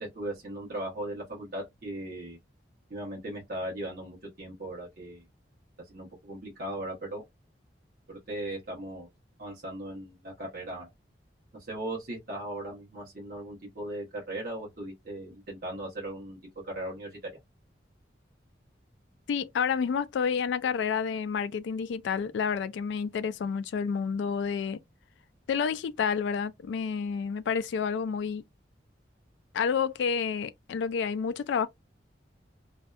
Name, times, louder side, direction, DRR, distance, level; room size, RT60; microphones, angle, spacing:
voice 1, 0.0-2.4 2.9-5.2 5.9-7.2 8.1-9.1 9.4-10.9 11.7-17.2, right 1 dB, 50° right, 0.9 m, -38 dB
voice 2, 19.3-24.8 25.5-28.4 29.5-31.7, left 6 dB, 80° left, 0.3 m, -29 dB
2.6 x 2.2 x 2.3 m
head